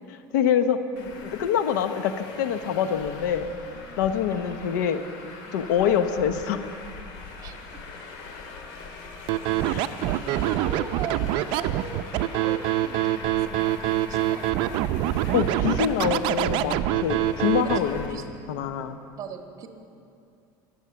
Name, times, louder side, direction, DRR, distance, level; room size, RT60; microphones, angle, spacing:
voice 1, 0.3-0.8 1.2-3.5 4.0-5.0 5.5-6.7 9.6-9.9 15.3-19.0, left 8 dB, 85° left, 10 dB, 0.9 m, -25 dB
Traffic noise roadway noise, 1.0-18.1, left 4 dB, 65° left, 2.3 m, -41 dB
voice 2, 4.3-4.6 7.4-7.5 8.0-8.1 9.9-12.0 12.3-14.8 17.6-18.4 19.2-19.7, right 6 dB, 40° right, 4 dB, 1.6 m, -39 dB
Scratching (performance technique), 9.3-17.8, right 14 dB, 60° right, 0.5 m, -25 dB
22.0 x 8.0 x 6.9 m, 2.5 s
supercardioid pair, 125°, 10 cm